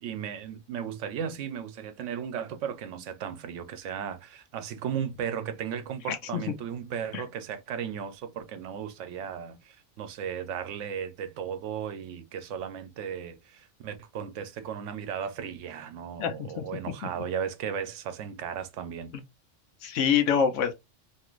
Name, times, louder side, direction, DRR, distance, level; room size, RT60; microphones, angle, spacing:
voice 1, 0.0-19.1, right 8 dB, 80° right, 0.9 m, -35 dB
voice 2, 6.1-6.4 7.1-7.2 16.2-16.6 19.8-20.7, left 7 dB, 85° left, 1.0 m, -26 dB
2.8 x 2.4 x 3.0 m
omnidirectional pair, 1.2 m